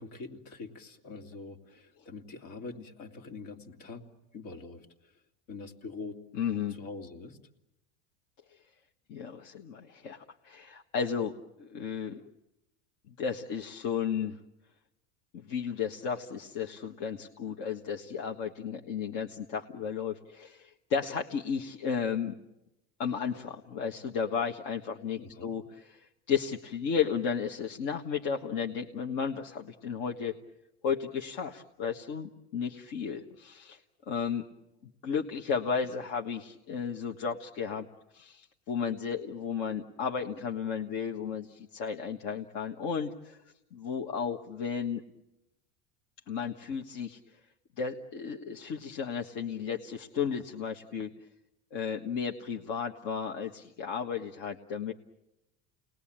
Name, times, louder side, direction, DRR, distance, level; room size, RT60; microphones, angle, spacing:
voice 1, 0.0-4.0 4.3-5.1 5.5-6.2 6.7-7.4 25.2-25.5, left 3 dB, 80° left, 3 dB, 3.0 m, -44 dB
voice 2, 6.3-6.8 9.1-11.3 11.6-12.3 13.1-14.4 15.3-22.3 23.0-30.4 30.8-33.8 34.1-34.5 34.8-37.9 38.1-43.4 43.7-45.0 46.3-47.4 47.8-51.1 51.7-54.9, left 6 dB, 60° left, 3 dB, 1.5 m, -34 dB
29.5 x 20.5 x 8.8 m, 0.95 s
supercardioid pair, 135°, 34 cm